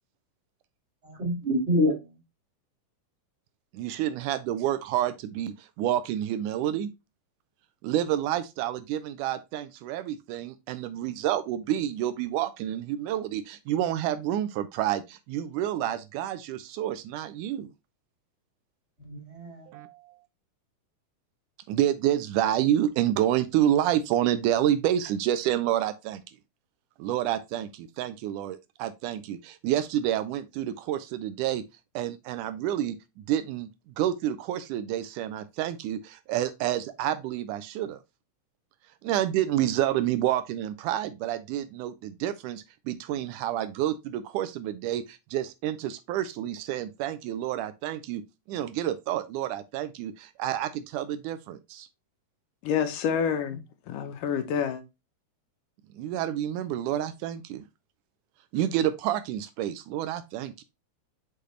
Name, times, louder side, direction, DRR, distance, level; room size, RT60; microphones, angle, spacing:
voice 1, 1.0-2.2 19.0-19.7 53.2-53.3, equal, 20° right, 3.7 m, -27 dB
voice 2, 3.7-6.9 7.8-17.7 19.7-20.1 21.7-26.2 27.0-31.6 32.0-33.7 34.0-38.0 39.0-48.2 48.5-51.9 55.9-57.6 58.5-60.6, right 12 dB, 80° right, 2.0 m, -29 dB
voice 3, 52.6-54.8, left 7 dB, 80° left, 2.5 m, -28 dB
6.8 x 5.0 x 3.1 m
omnidirectional pair, 3.7 m